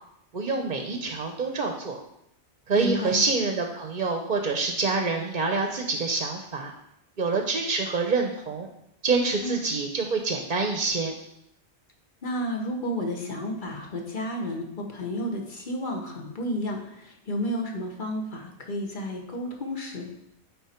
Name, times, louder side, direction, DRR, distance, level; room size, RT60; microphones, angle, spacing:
voice 1, 0.3-2.0 2.7-6.7 7.2-8.7 9.0-11.1, right 4 dB, 50° right, 4 dB, 0.8 m, -26 dB
voice 2, 2.7-3.2 9.4-9.5 12.2-20.1, equal, 45° left, 2 dB, 1.2 m, -31 dB
9.3 x 4.2 x 4.4 m, 0.80 s
omnidirectional pair, 1.2 m